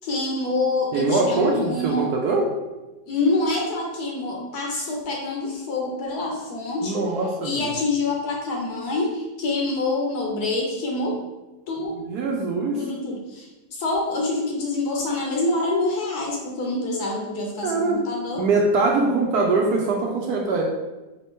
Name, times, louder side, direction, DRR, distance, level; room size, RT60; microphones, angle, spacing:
voice 1, 0.0-2.1 3.1-7.0 7.4-11.2 11.7-12.0 12.7-18.5, left 2 dB, 65° left, 0 dB, 1.2 m, -26 dB
voice 2, 0.9-2.5 6.8-7.7 12.1-12.8 17.6-18.0 18.4-20.6, right 3 dB, 70° right, 0 dB, 1.0 m, -22 dB
4.2 x 2.7 x 3.5 m, 1.1 s
omnidirectional pair, 2.0 m